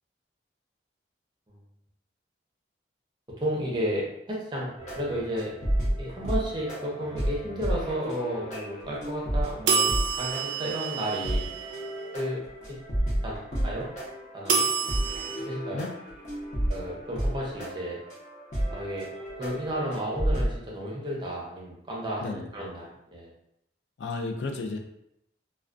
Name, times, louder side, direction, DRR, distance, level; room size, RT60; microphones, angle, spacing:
voice 1, 3.4-4.7 5.0-5.5 6.0-11.4 12.1-12.4 12.7-12.8 13.2-13.9 14.3-14.6 15.4-15.8 16.7-18.0 18.7-19.0 19.4-23.3, equal, 25° right, -4 dB, 0.6 m, -32 dB
sound 1, 4.8-20.6, right 1 dB, 40° left, 0.8 m, -32 dB
sound 2, 9.7-11.9 14.5-15.4, right 5 dB, 80° right, 0.4 m, -27 dB
voice 2, 24.0-24.8, left 3 dB, 75° left, 3 dB, 0.3 m, -32 dB
2.3 x 2.2 x 2.4 m, 0.78 s
head